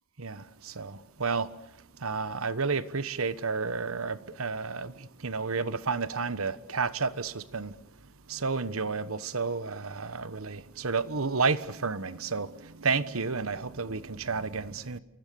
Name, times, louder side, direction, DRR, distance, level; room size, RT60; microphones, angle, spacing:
voice 1, 0.2-1.5 2.0-7.7 8.3-15.0, right 4 dB, 90° right, 1.2 m, -31 dB
28.5 x 24.0 x 6.9 m
head